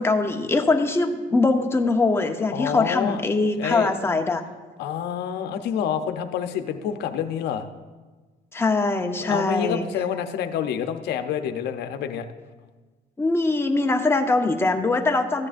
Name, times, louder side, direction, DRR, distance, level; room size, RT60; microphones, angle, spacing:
voice 1, 0.0-4.4 8.5-9.9 13.2-15.5, left 3 dB, 15° left, 5 dB, 0.8 m, -22 dB
voice 2, 2.5-3.2 3.6-3.9 4.8-7.7 9.2-12.3, left 8 dB, 80° left, 8 dB, 0.7 m, -27 dB
14.5 x 9.7 x 2.6 m, 1.3 s
cardioid pair, 110°, 17 cm